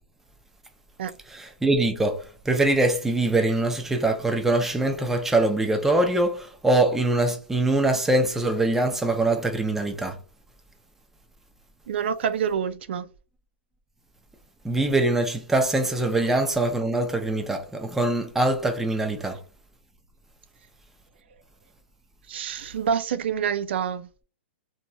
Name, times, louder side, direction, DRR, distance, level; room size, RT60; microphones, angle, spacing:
voice 1, 1.3-10.2 14.6-19.4, right 2 dB, 5° right, 0.5 m, -23 dB
voice 2, 11.9-13.0 16.0-16.1 22.3-24.1, right 7 dB, 70° right, 0.3 m, -27 dB
2.9 x 2.7 x 2.2 m
hypercardioid pair, 145°, 6 cm